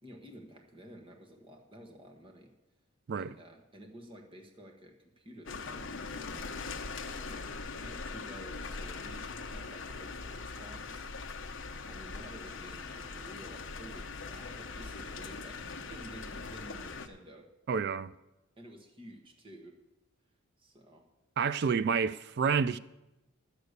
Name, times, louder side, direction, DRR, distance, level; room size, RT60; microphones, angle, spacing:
voice 1, 0.0-2.5 3.1-6.5 7.2-11.0 11.9-17.5 18.6-19.7 20.6-21.1, right 1 dB, 25° right, 1.3 m, -52 dB
sound 1, 5.4-17.1, left 4 dB, 55° left, 0.8 m, -41 dB
voice 2, 17.7-18.1 21.4-22.8, right 6 dB, 50° right, 0.3 m, -29 dB
11.5 x 6.7 x 8.1 m
head